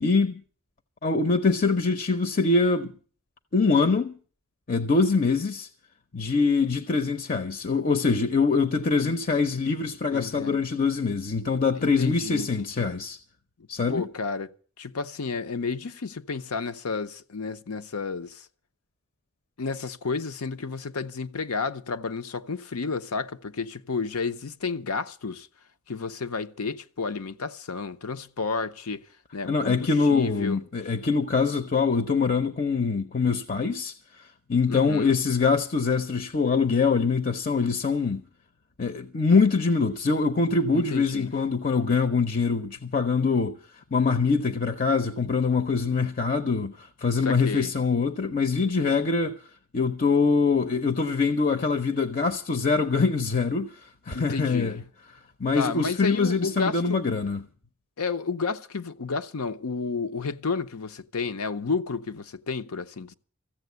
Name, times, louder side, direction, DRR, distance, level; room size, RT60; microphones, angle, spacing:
voice 1, 0.0-0.4 1.0-2.9 3.5-4.2 4.7-5.7 6.1-13.2 13.7-14.1 29.5-38.2 38.8-49.4 49.7-54.8 55.4-57.5, left 4 dB, 40° left, 0.7 m, -24 dB
voice 2, 10.1-10.6 11.8-12.9 13.9-14.5 14.8-18.5 19.6-25.5 25.9-29.0 29.3-30.6 34.7-35.1 40.7-41.3 47.2-47.7 54.1-54.8 55.5-57.0 58.0-63.1, left 4 dB, 80° left, 0.8 m, -31 dB
14.5 x 7.6 x 9.3 m
head